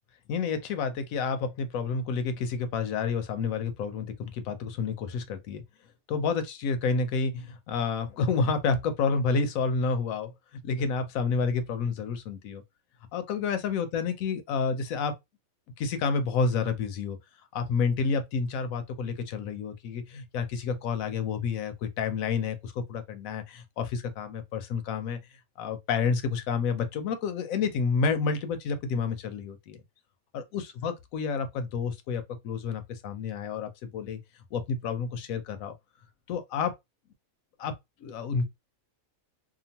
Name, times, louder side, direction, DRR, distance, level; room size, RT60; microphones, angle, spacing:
voice 1, 0.3-5.6 6.1-12.6 13.1-15.1 15.8-17.2 17.5-25.2 25.6-29.8 30.3-34.2 34.5-35.7 36.3-36.8 37.6-37.7 38.0-38.4, left 5 dB, 75° left, 1.0 m, -29 dB
2.9 x 2.3 x 2.7 m
omnidirectional pair, 1.5 m